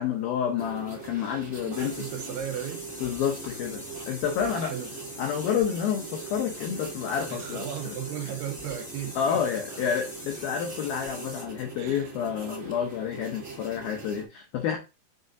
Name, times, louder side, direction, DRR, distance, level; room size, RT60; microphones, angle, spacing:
voice 1, 0.0-2.1 3.0-4.7 5.2-8.0 9.2-14.8, left 8 dB, 80° left, 2.2 m, -29 dB
sound 1, 0.6-14.3, right 4 dB, 20° right, 2.5 m, -42 dB
voice 2, 1.6-2.8 4.4-4.9 7.3-9.6 11.8-12.1 14.0-14.1, right 9 dB, 80° right, 2.5 m, -36 dB
sound 2, 1.7-11.4, left 1 dB, 15° left, 1.6 m, -43 dB
7.5 x 6.7 x 2.6 m
omnidirectional pair, 5.2 m